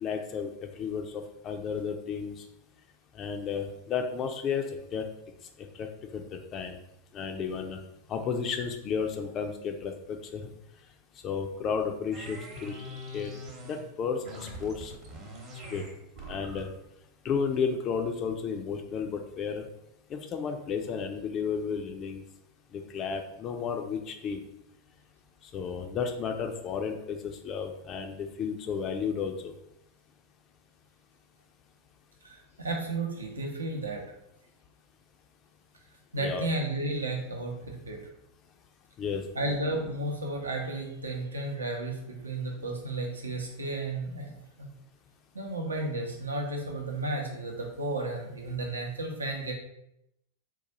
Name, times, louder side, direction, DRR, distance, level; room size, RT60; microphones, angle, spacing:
voice 1, 0.0-2.4 3.1-4.6 4.9-5.0 5.8-6.8 7.1-7.8 8.1-10.4 11.2-12.7 13.1-13.3 13.6-14.9 15.7-15.8 16.3-16.7 17.2-19.7 20.1-22.2 22.7-24.4 25.5-29.5 36.2-36.5 39.0-39.2, left 6 dB, 30° left, 4 dB, 0.3 m, -33 dB
sound 1, 12.1-13.9 14.2-16.8, equal, 35° right, 0.9 m, -42 dB
voice 2, 32.2-34.0 36.1-38.0 39.3-44.7 45.3-49.5, right 2 dB, 75° right, 1 dB, 0.6 m, -33 dB
3.9 x 2.3 x 2.8 m, 0.82 s
figure-of-eight pair, 90°, 0 cm